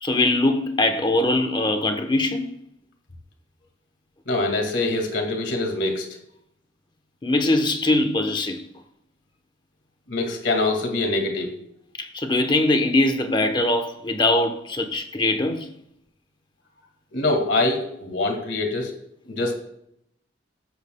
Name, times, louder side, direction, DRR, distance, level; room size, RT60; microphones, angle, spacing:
voice 1, 0.0-2.5 7.2-8.6 12.0-15.7, left 2 dB, 25° left, 0.9 m, -22 dB
voice 2, 4.3-6.1 10.1-11.5 17.1-18.9 19.3-19.5, left 2 dB, 65° left, 2.1 m, -24 dB
13.5 x 8.8 x 2.2 m
head